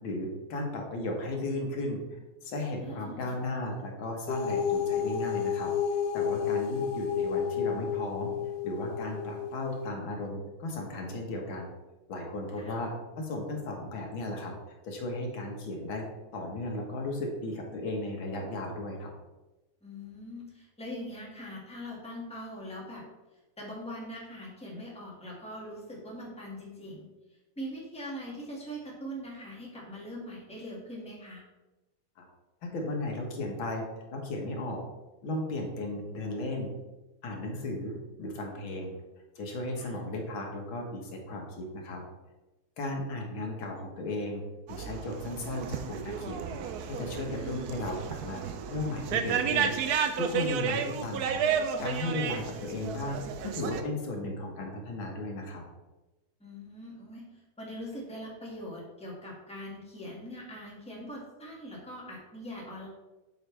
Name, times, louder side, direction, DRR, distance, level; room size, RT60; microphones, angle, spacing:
voice 1, 0.0-5.7 6.1-8.3 8.6-11.7 12.1-12.9 13.2-14.5 14.8-16.1 16.3-19.1 32.2-32.3 32.6-33.8 34.1-34.8 35.2-36.7 37.2-38.9 39.4-42.0 42.8-44.4 44.7-46.4 46.9-49.8 50.2-55.6, left 2 dB, 90° left, 1 dB, 2.1 m, -35 dB
voice 2, 2.8-3.2 12.5-12.8 19.8-23.0 23.6-27.1 27.5-31.4 39.7-40.0 47.3-47.8 56.4-57.2 57.6-62.9, equal, 5° left, -4 dB, 1.7 m, -42 dB
sound 1, 4.3-9.9, left 7 dB, 65° left, 1.2 m, -31 dB
sound 2, 44.7-53.8, right 7 dB, 70° right, 1.0 m, -32 dB
7.8 x 5.7 x 3.3 m, 1.1 s
omnidirectional pair, 2.1 m